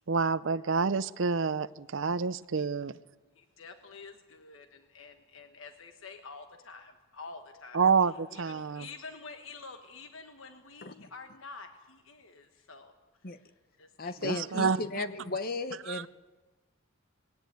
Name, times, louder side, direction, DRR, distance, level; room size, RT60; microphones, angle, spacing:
voice 1, 0.1-2.9 7.7-8.9 14.2-14.8 15.9-16.0, right 5 dB, 65° right, 14 dB, 0.6 m, -28 dB
voice 2, 3.3-7.8 8.3-12.9 13.8-14.7, left 4 dB, 75° left, 7 dB, 1.3 m, -48 dB
voice 3, 14.0-16.1, left 2 dB, 45° left, 11 dB, 1.0 m, -35 dB
20.0 x 18.0 x 9.4 m, 1.2 s
head